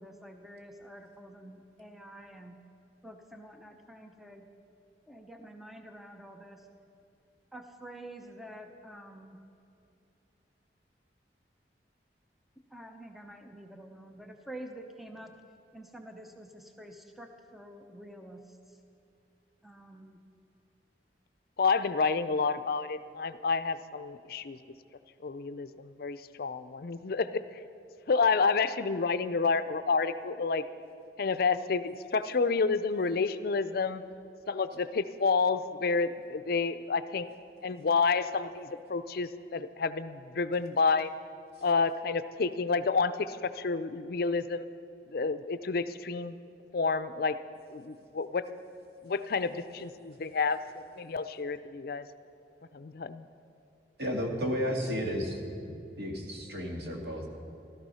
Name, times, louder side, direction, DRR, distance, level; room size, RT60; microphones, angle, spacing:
voice 1, 0.0-2.6 3.0-4.5 5.1-6.6 7.5-9.4 12.7-15.3 15.7-18.6 19.6-20.2, right 1 dB, ahead, 4 dB, 0.7 m, -48 dB
voice 2, 21.6-24.6 25.2-27.4 28.1-30.6 31.2-34.0 34.5-37.3 37.6-41.1 41.6-44.7 45.1-46.4 46.7-47.4 47.7-48.4 49.0-50.6 51.0-52.0 52.7-53.3, left 4 dB, 55° left, 12 dB, 0.5 m, -29 dB
voice 3, 54.0-57.3, equal, 65° right, 1 dB, 2.2 m, -33 dB
15.0 x 13.0 x 5.6 m, 2.6 s
head